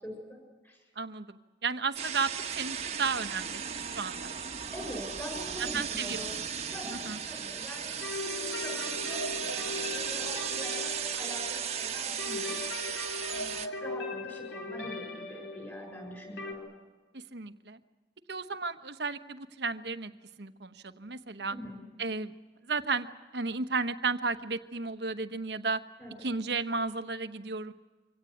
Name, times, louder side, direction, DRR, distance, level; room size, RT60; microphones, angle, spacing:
voice 1, 0.0-0.8 4.7-6.4 6.7-12.6 13.3-16.7 21.5-21.8 26.0-26.4, equal, 15° left, 1 dB, 6.8 m, -43 dB
voice 2, 1.0-3.6 4.0-4.3 5.7-6.2 7.1-7.2 17.1-17.8 18.3-20.1 20.4-21.6 22.0-22.3 22.7-23.1 23.3-25.8 26.2-27.7, right 4 dB, 70° right, 10 dB, 1.1 m, -33 dB
sound 1, 1.9-13.7, right 7 dB, 35° right, 1.4 m, -36 dB
sound 2, 8.0-16.5, left 3 dB, 90° left, 2.8 m, -39 dB
25.0 x 17.5 x 9.3 m, 1.3 s
head